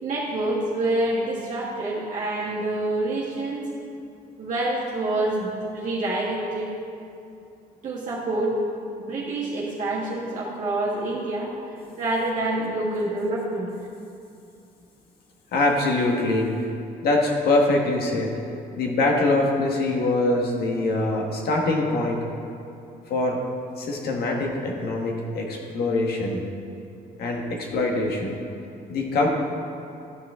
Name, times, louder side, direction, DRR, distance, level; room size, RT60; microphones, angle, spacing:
voice 1, 0.0-3.7 4.4-6.7 7.8-8.6 9.0-11.5 12.0-13.7, right 2 dB, 50° right, -7 dB, 1.6 m, -27 dB
voice 2, 15.5-16.5 17.0-18.3 18.8-22.2 23.1-23.4 23.8-26.4 27.2-28.4 28.9-29.3, left 2 dB, 65° left, 1 dB, 1.5 m, -23 dB
12.5 x 5.8 x 3.7 m, 2.6 s
cardioid pair, 110°, 17 cm